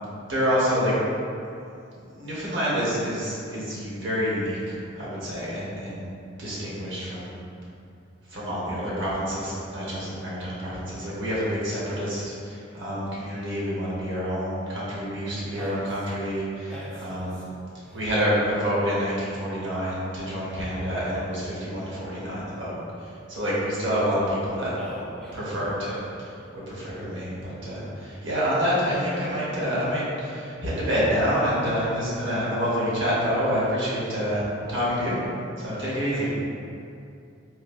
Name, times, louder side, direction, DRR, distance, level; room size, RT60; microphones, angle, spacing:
voice 1, 0.3-0.9 1.9-6.1 6.4-7.3 8.3-16.7 17.0-17.4 17.9-22.7 23.0-24.7 25.3-34.4 34.7-35.2 35.6-36.3, equal, 65° right, -8 dB, 1.1 m, -27 dB
voice 2, 15.3-16.1 16.7-17.5 17.8-18.1 18.4-18.6 24.7-26.2 36.0-36.2, right 1 dB, 5° left, -7 dB, 0.4 m, -42 dB
4.0 x 2.7 x 2.5 m, 2.5 s
head